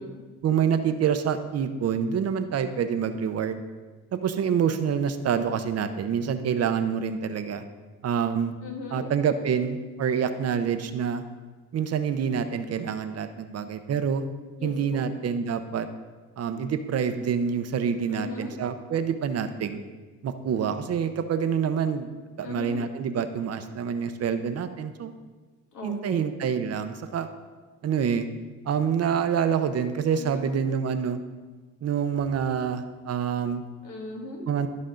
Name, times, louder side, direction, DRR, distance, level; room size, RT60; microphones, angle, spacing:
voice 1, 0.4-3.6 4.1-7.6 8.0-8.5 8.9-11.2 11.7-14.3 14.6-15.9 16.4-19.8 20.2-22.1 22.4-25.1 25.8-27.3 27.8-28.3 28.7-31.2 31.8-33.6 34.5-34.7, right 7 dB, 55° right, 9 dB, 0.7 m, -27 dB
voice 2, 8.6-9.1 14.6-15.0 18.1-18.6 22.4-22.9 25.7-26.2 30.1-30.6 33.8-34.4, left 3 dB, 80° left, 1 dB, 1.8 m, -38 dB
13.0 x 5.3 x 3.8 m, 1.3 s
cardioid pair, 90°, 30 cm